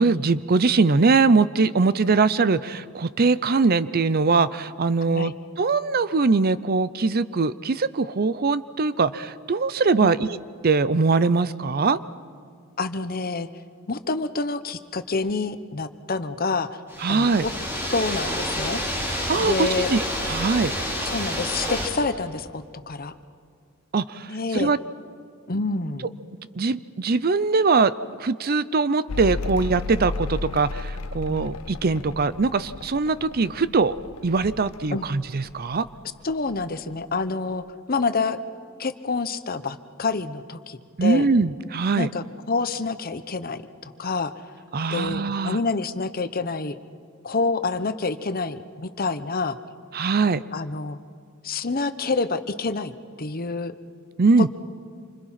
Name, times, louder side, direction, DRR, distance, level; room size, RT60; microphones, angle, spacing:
voice 1, 0.0-10.4 10.6-12.0 17.0-17.5 19.3-20.7 23.9-24.8 26.6-27.9 28.2-33.9 34.2-35.8 41.0-42.1 44.7-45.6 49.9-50.4 54.2-54.5, right 4 dB, 45° right, 16 dB, 0.6 m, -22 dB
voice 2, 12.8-13.5 13.9-16.7 17.1-17.5 17.9-18.8 19.4-19.9 21.0-23.1 24.3-24.7 25.5-26.1 31.3-31.5 34.9-35.1 36.2-38.4 38.8-41.3 41.9-44.3 44.9-46.8 47.2-49.6 50.5-51.0 51.4-52.9 53.2-53.7 54.4-54.5, left 3 dB, 45° left, 11 dB, 1.0 m, -27 dB
sound 1, 16.9-21.9, equal, 10° right, 5.8 m, -28 dB
Mechanical fan, 29.1-36.0 36.2-37.0, left 3 dB, 85° left, 0.7 m, -34 dB
27.5 x 25.5 x 5.8 m, 2.3 s
head